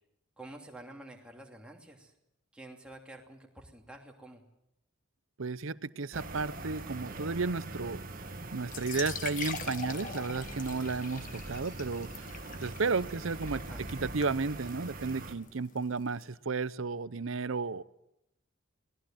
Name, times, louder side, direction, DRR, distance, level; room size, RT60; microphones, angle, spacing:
voice 1, 0.4-2.1 2.5-4.4 13.5-13.9 17.2-17.4, right 1 dB, 5° right, 0 dB, 2.9 m, -49 dB
voice 2, 5.4-8.0 8.5-12.3 12.6-13.6 14.0-17.8, right 4 dB, 75° right, 16 dB, 0.8 m, -33 dB
sound 1, 6.1-15.4, right 2 dB, 40° right, 1.9 m, -42 dB
sound 2, 8.6-16.2, left 5 dB, 40° left, 1.5 m, -43 dB
23.5 x 19.5 x 7.7 m, 0.82 s
head